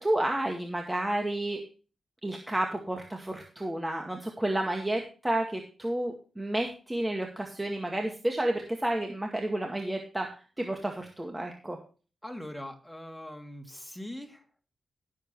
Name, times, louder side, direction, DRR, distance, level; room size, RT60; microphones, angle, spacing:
voice 1, 0.0-1.6 2.2-10.3 10.6-11.8, right 1 dB, 15° right, 2 dB, 1.9 m, -31 dB
voice 2, 12.2-14.4, left 1 dB, 5° left, 4 dB, 2.8 m, -41 dB
17.0 x 7.5 x 3.2 m, 0.36 s
wide cardioid pair, 105°, 0 cm